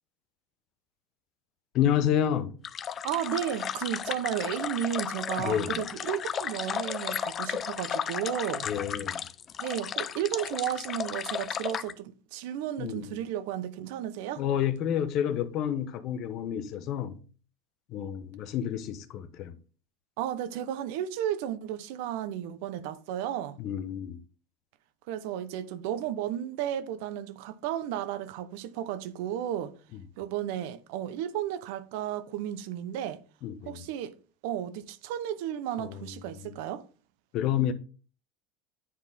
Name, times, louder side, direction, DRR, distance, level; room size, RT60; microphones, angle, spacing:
voice 1, 1.7-2.6 5.4-5.9 8.6-9.2 12.8-13.2 14.4-17.2 17.9-19.6 23.6-24.2 33.4-33.9 35.8-36.1 36.3-36.6 37.3-37.7, left 10 dB, 55° left, 0.8 m, -29 dB
sound 1, 2.6-11.9, left 8 dB, 35° left, 0.4 m, -34 dB
voice 2, 3.0-8.7 9.6-14.4 20.2-23.6 25.1-29.7 30.2-33.2 33.7-34.1 34.4-36.8, right 11 dB, 70° right, 0.8 m, -33 dB
9.5 x 4.2 x 3.6 m
supercardioid pair, 110°, 0 cm